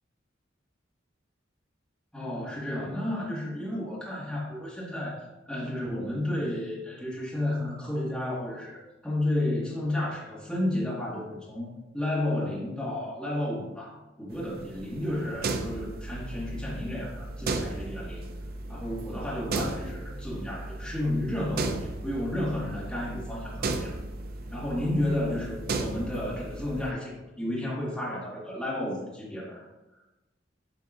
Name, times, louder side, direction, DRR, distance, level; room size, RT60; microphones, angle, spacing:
voice 1, 2.1-5.2 5.5-18.3 18.7-24.0 24.5-29.6, left 1 dB, 5° left, -6 dB, 1.8 m, -32 dB
sound 1, 14.3-26.9, right 2 dB, 50° right, 0.6 m, -35 dB
9.0 x 5.3 x 2.5 m, 1.0 s
head